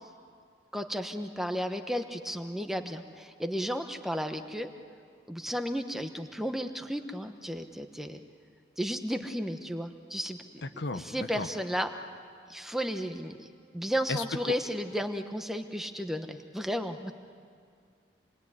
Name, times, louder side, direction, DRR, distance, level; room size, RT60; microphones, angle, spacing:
voice 1, 0.7-4.7 5.3-8.2 8.8-10.4 10.9-11.9 12.5-13.5 13.7-17.1, equal, ahead, 6 dB, 1.0 m, -33 dB
voice 2, 10.6-11.5 14.1-14.5, left 2 dB, 80° left, 9 dB, 1.1 m, -34 dB
28.0 x 21.0 x 9.7 m, 2.2 s
head